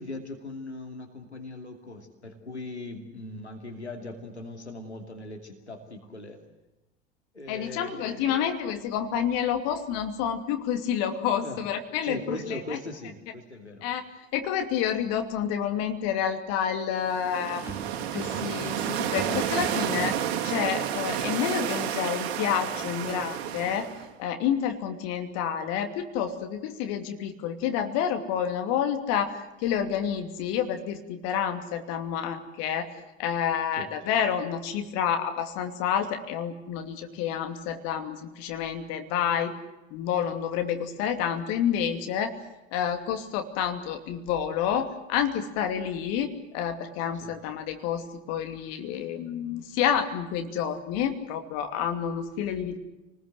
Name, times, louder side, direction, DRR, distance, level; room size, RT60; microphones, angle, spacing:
voice 1, 0.0-6.4 7.3-8.5 11.4-11.6 12.0-13.9 33.8-33.9 47.2-47.4, left 2 dB, 85° left, 3 dB, 2.6 m, -39 dB
voice 2, 7.5-12.2 13.8-14.0 14.3-20.2 20.4-23.9 24.2-32.9 33.2-39.5 39.9-42.3 42.7-52.8, left 8 dB, 50° left, 6 dB, 2.8 m, -29 dB
sound 1, 15.0-15.2 17.7-20.3, right 5 dB, 5° right, 2.4 m, -42 dB
sound 2, 17.0-24.1, right 10 dB, 55° right, 2.4 m, -31 dB
28.5 x 20.0 x 7.9 m, 0.98 s
figure-of-eight pair, 70°, 33 cm